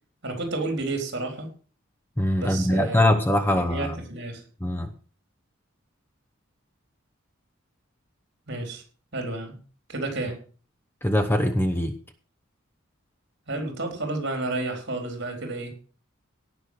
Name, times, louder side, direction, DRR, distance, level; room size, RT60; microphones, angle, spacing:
voice 1, 0.2-1.5 2.4-4.4 8.5-8.8 9.1-9.6 9.9-10.4 13.5-15.8, right 2 dB, 55° right, 4 dB, 4.1 m, -31 dB
voice 2, 2.2-3.9 4.6-4.9 11.0-11.9, left 1 dB, 10° left, 8 dB, 0.9 m, -22 dB
17.5 x 6.1 x 6.4 m, 0.40 s
head